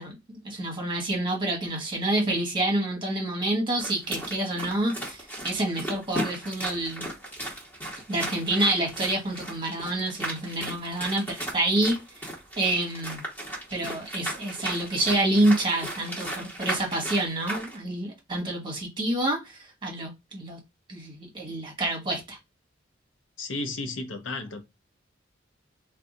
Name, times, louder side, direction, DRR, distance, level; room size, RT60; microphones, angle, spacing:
voice 1, 0.0-7.0 8.1-12.0 12.6-13.2 13.7-20.6 20.9-22.4, right 1 dB, 25° right, 1.2 m, -28 dB
sound 1, 3.8-17.8, right 1 dB, 10° left, 1.3 m, -36 dB
voice 2, 23.4-24.6, left 2 dB, 80° left, 0.6 m, -33 dB
2.6 x 2.3 x 3.8 m
head